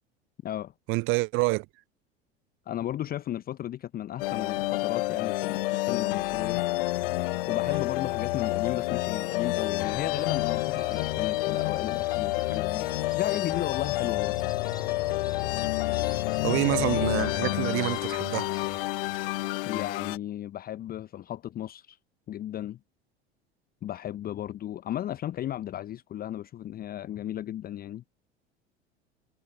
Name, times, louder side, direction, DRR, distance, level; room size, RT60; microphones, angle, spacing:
voice 1, 0.9-1.7 16.4-18.5, right 24 dB, 40° right, 0.7 m, -27 dB
voice 2, 2.7-6.6 7.5-14.4 19.6-22.0 22.3-22.8 23.8-28.0, left 12 dB, 30° left, 0.8 m, -35 dB
sound 1, 4.2-20.2, left 20 dB, 55° left, 1.0 m, -29 dB
sound 2, 5.0-17.4, right 8 dB, 75° right, 7.0 m, -55 dB
sound 3, 9.8-18.8, left 3 dB, 10° left, 6.8 m, -46 dB
figure-of-eight pair, 75°, 32 cm